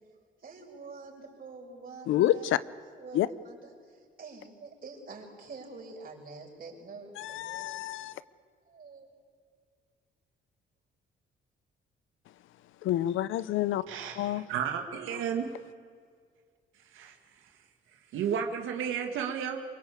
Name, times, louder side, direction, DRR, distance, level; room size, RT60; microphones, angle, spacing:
voice 1, 0.4-7.9 8.6-9.1, right 3 dB, 45° right, 6.6 m, -47 dB
voice 2, 2.1-2.6 3.1-3.3 7.2-8.1 12.8-13.8 14.2-14.5, left 13 dB, 85° left, 0.8 m, -28 dB
voice 3, 13.9-15.5 16.9-17.1 18.1-19.6, right 8 dB, 85° right, 2.0 m, -32 dB
24.5 x 22.5 x 8.4 m
cardioid pair, 90°, 20 cm